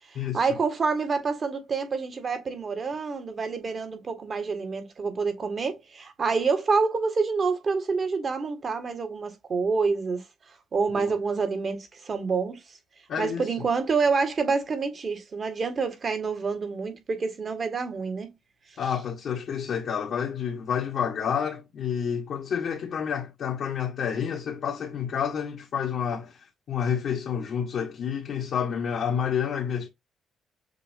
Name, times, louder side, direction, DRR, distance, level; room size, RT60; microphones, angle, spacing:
voice 1, 0.1-10.2 10.7-12.6 13.2-18.3, right 4 dB, 45° right, 1.7 m, -27 dB
voice 2, 13.1-13.5 18.8-26.4 26.7-29.9, left 7 dB, 65° left, 1.4 m, -29 dB
6.8 x 2.7 x 2.7 m
cardioid pair, 90°, 0 cm